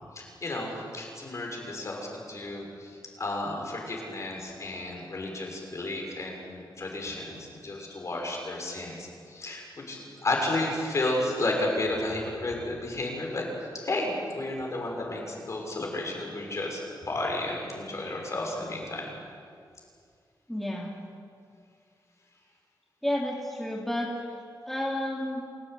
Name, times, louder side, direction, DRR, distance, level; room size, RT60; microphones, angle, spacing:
voice 1, 0.1-13.4 13.7-19.1, left 2 dB, 40° left, 0 dB, 6.4 m, -32 dB
voice 2, 20.5-21.0 23.0-24.1 24.7-25.4, left 1 dB, 5° left, -2 dB, 2.6 m, -31 dB
28.0 x 17.5 x 9.5 m, 2.3 s
wide cardioid pair, 155°, 8 cm